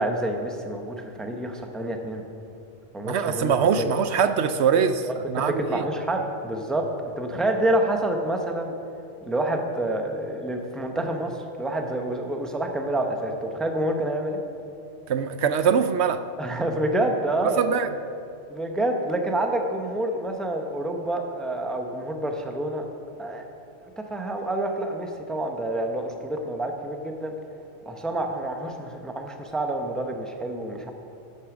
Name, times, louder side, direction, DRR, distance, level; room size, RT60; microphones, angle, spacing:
voice 1, 0.0-2.2 2.9-3.9 5.0-5.1 5.4-8.7 9.2-14.4 16.4-17.6 18.5-22.9 23.2-23.4 24.0-27.3 27.8-30.9, right 1 dB, ahead, 4 dB, 0.7 m, -28 dB
voice 2, 3.0-5.8 15.1-16.2 17.6-17.9, right 7 dB, 75° right, 10 dB, 0.8 m, -23 dB
11.0 x 8.5 x 6.0 m, 2.5 s
omnidirectional pair, 1.2 m